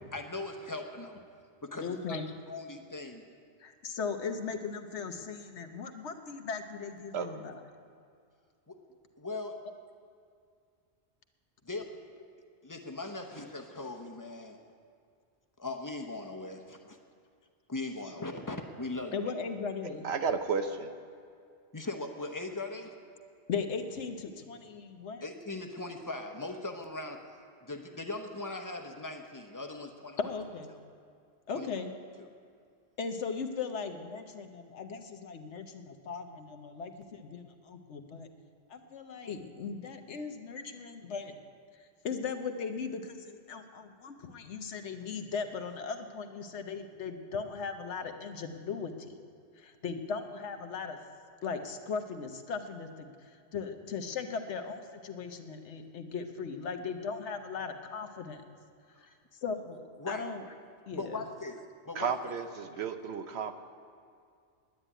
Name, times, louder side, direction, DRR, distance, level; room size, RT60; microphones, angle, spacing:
voice 1, 0.1-1.2 1.6-2.2 2.5-3.2 8.7-8.8 9.2-9.6 11.6-11.9 12.6-14.6 15.6-17.0 17.7-19.3 21.7-22.9 25.2-30.2 31.5-31.7 59.0-59.2 60.0-60.3 60.9-61.6 61.9-62.1, left 2 dB, 20° left, 4 dB, 0.9 m, -39 dB
voice 2, 1.8-2.3 3.6-7.6 19.1-20.1 23.5-25.2 30.2-30.7 31.5-31.9 33.0-38.3 38.7-41.3 42.0-49.2 49.6-51.0 51.4-58.4 59.0-59.1 59.4-60.4 60.9-61.2, left 5 dB, 80° left, 6 dB, 1.2 m, -38 dB
voice 3, 20.0-20.9 61.9-63.5, right 6 dB, 70° right, 8 dB, 1.0 m, -32 dB
9.8 x 9.6 x 10.0 m, 2.3 s
omnidirectional pair, 1.1 m